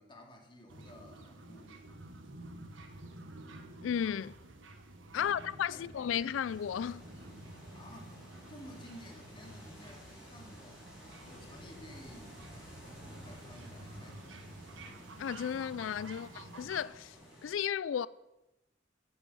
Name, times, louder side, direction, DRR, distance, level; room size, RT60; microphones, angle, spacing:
voice 1, 0.0-1.8 5.1-6.0 7.7-10.8 11.2-12.6 13.1-14.4, equal, 25° left, 2.4 m, -54 dB
sound 1, 0.7-16.9, right 2 dB, 85° right, 1.3 m, -51 dB
voice 2, 3.8-4.4 5.1-7.0 15.2-17.2 17.4-18.1, left 8 dB, 85° left, 0.3 m, -34 dB
sound 2, 6.4-17.5, equal, 5° right, 4.9 m, -54 dB
14.5 x 8.1 x 5.5 m
head